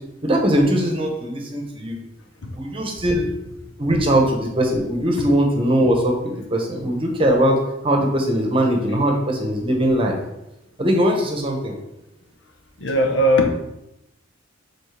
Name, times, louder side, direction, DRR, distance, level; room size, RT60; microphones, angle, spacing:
voice 1, 0.2-2.0 2.5-3.3 3.8-7.6 7.8-10.2 10.8-11.8, equal, 30° right, 1 dB, 1.0 m, -20 dB
voice 2, 2.4-2.8 12.8-13.5, equal, 70° left, 3 dB, 0.9 m, -19 dB
7.0 x 4.2 x 3.4 m, 0.89 s
head